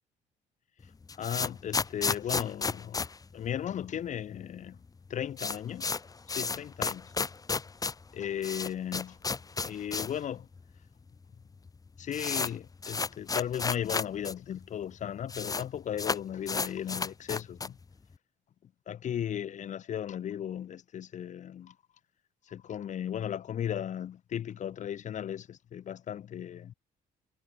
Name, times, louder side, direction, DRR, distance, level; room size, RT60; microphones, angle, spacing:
sound 1, 0.8-4.1 4.3-4.4 4.7-4.8 5.1-10.2 10.5-10.6 11.3-11.4 11.7-14.3 14.6-14.7 14.9-15.6 16.0-17.8, left 4 dB, 20° left, 1.1 m, -33 dB
voice 1, 1.2-3.0 3.3-4.8 5.1-6.0 6.3-7.1 8.1-9.2 9.7-10.5 12.0-17.8 18.9-21.7 22.5-26.7, left 9 dB, 45° left, 0.9 m, -36 dB
cardioid pair, 110°, 17 cm